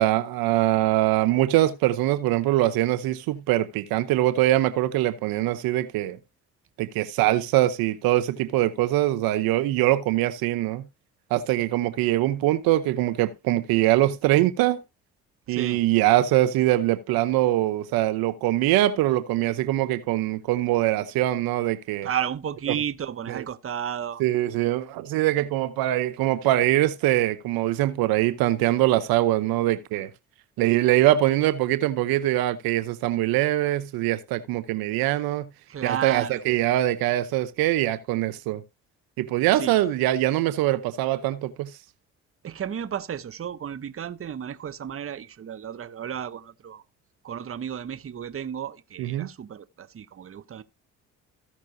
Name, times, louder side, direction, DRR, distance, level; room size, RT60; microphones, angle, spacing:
voice 1, 0.0-6.2 6.8-10.8 11.3-14.8 15.5-22.1 22.7-22.8 23.3-23.4 24.2-30.1 30.6-35.5 35.8-38.6 39.2-41.7 49.0-49.3, right 15 dB, 75° right, 0.9 m, -23 dB
voice 2, 15.5-15.8 22.0-24.2 35.7-36.6 39.5-39.8 42.4-46.8 47.2-50.6, right 9 dB, 40° right, 0.9 m, -33 dB
15.5 x 6.0 x 2.7 m
hypercardioid pair, 60°, 36 cm